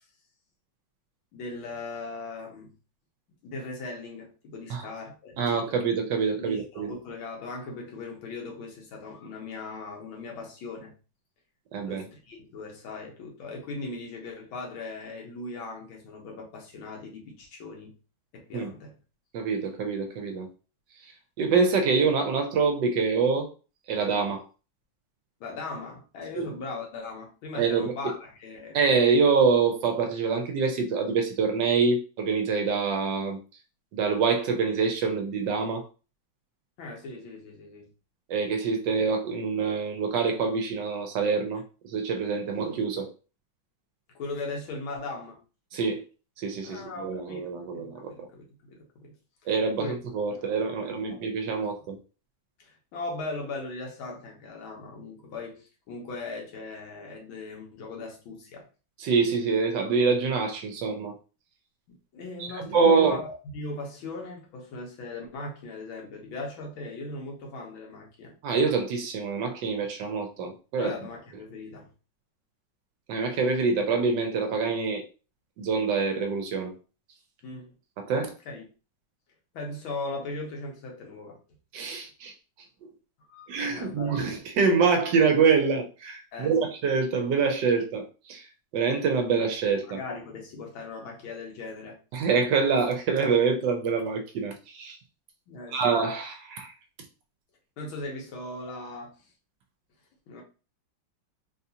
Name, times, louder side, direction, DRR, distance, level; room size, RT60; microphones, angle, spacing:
voice 1, 1.3-2.7 3.4-5.6 6.3-10.9 11.9-17.9 18.3-19.0 25.4-28.8 36.8-37.9 44.2-45.4 46.6-49.2 49.4-49.5 49.8-49.9 50.3-51.7 52.6-58.7 61.9-68.3 70.8-71.9 77.4-77.7 78.5-78.6 79.5-81.4 83.2-84.3 86.3-86.7 89.9-92.0 95.5-95.9 97.8-99.2 100.3-100.4, left 3 dB, 85° left, 1.8 m, -39 dB
voice 2, 5.4-6.9 11.7-12.0 18.5-18.7 19.3-20.5 21.4-23.5 23.9-24.4 26.3-26.5 27.5-28.1 28.7-33.4 33.9-35.8 38.3-43.1 45.7-46.0 46.4-48.1 49.5-52.0 59.0-61.1 62.4-63.2 68.4-70.9 73.1-75.0 75.6-76.7 78.0-78.3 81.7-82.3 83.5-88.4 88.7-90.0 92.1-95.0 95.7-96.7, right 5 dB, 70° right, 1.2 m, -25 dB
4.0 x 2.4 x 2.7 m
omnidirectional pair, 2.2 m